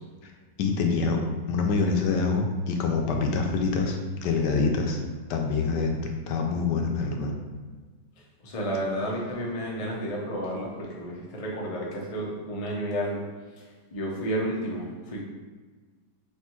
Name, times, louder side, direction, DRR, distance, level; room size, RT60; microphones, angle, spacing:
voice 1, 0.6-1.2 1.5-5.0 5.3-6.0 6.3-7.4, left 4 dB, 80° left, 2 dB, 1.2 m, -25 dB
voice 2, 8.4-13.2 13.9-15.2, equal, 65° left, -4 dB, 0.3 m, -31 dB
3.4 x 2.6 x 4.4 m, 1.4 s
omnidirectional pair, 1.9 m